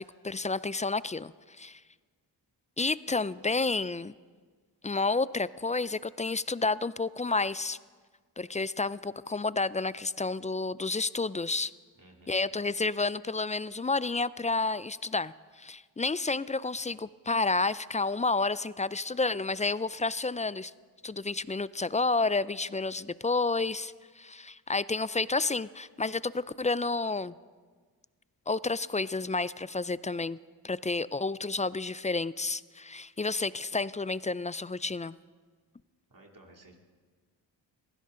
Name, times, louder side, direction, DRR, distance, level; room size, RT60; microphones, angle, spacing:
voice 1, 0.0-1.8 2.8-4.1 4.8-7.8 8.4-11.7 12.3-20.7 21.0-27.3 28.5-30.4 30.6-35.2, left 3 dB, 15° left, 18 dB, 0.4 m, -30 dB
voice 2, 12.0-12.4 36.1-36.8, right 2 dB, 45° right, 1 dB, 2.9 m, -55 dB
23.0 x 16.0 x 3.8 m, 1.5 s
cardioid pair, 45°, 45 cm